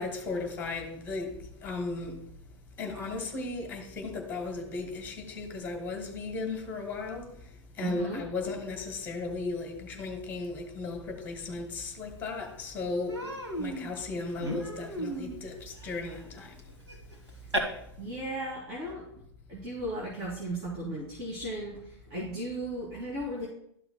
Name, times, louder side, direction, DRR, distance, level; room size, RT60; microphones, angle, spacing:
voice 1, 0.0-2.2 2.8-7.4 7.7-16.5, left 3 dB, 15° left, 1.7 m, -36 dB
voice 2, 7.8-8.2 18.0-19.0 19.5-23.5, right 1 dB, 35° right, 3.0 m, -36 dB
Human voice, 12.1-12.2 12.5-12.7 13.1-17.6, right 1 dB, 85° right, 1.9 m, -36 dB
12.5 x 5.9 x 2.3 m
figure-of-eight pair, 105°, 14 cm